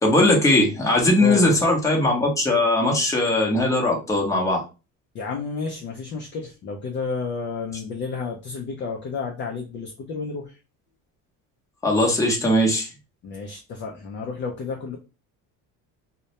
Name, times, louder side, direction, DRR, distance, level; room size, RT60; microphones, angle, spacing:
voice 1, 0.0-4.6 11.8-12.9, left 1 dB, 10° left, -1 dB, 0.7 m, -19 dB
voice 2, 1.2-1.6 5.1-10.6 13.2-15.0, left 4 dB, 35° left, 1 dB, 0.4 m, -31 dB
2.2 x 2.1 x 2.8 m, 0.30 s
cardioid pair, 120°, 35 cm